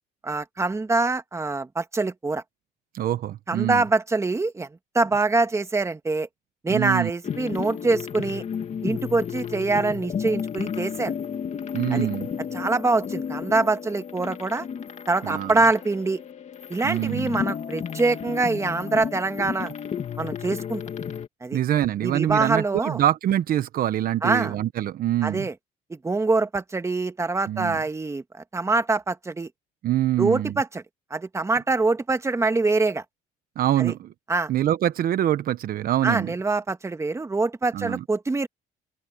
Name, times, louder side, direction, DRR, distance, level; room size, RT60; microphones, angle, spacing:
voice 1, 0.2-2.4 3.5-4.7 4.9-6.3 6.6-8.4 8.8-11.1 11.9-12.1 12.5-14.7 15.1-16.2 16.7-19.7 20.2-20.8 21.4-21.6 22.0-23.0 24.2-24.6 25.2-25.5 25.9-28.2 28.5-29.5 30.2-30.7 31.1-33.0 33.8-33.9 34.3-34.5 36.0-38.5, right 3 dB, 15° right, 1.6 m, -24 dB
voice 2, 2.9-3.8 6.7-7.1 11.7-12.3 15.2-15.5 16.8-17.4 21.5-25.5 27.5-27.8 29.8-30.5 33.6-34.1 34.5-36.3 37.7-38.0, right 12 dB, 60° right, 1.1 m, -25 dB
sound 1, 7.2-21.3, left 7 dB, 45° left, 2.4 m, -33 dB
open air
cardioid pair, 110°, 17 cm